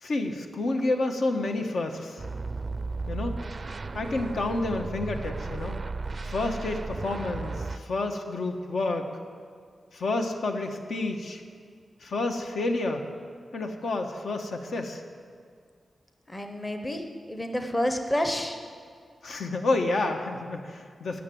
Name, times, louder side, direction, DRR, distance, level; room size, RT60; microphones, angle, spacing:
voice 1, 0.0-2.2 3.1-3.4 3.9-5.8 6.2-9.1 9.9-11.4 12.0-13.0 13.5-15.0 19.2-21.2, left 2 dB, 75° left, 4 dB, 1.3 m, -29 dB
sound 1, 2.2-7.8, right 3 dB, 30° right, 0.4 m, -35 dB
voice 2, 16.3-18.6, left 1 dB, 15° left, 5 dB, 0.8 m, -29 dB
17.0 x 6.8 x 9.2 m, 2.1 s
wide cardioid pair, 180°, 0 cm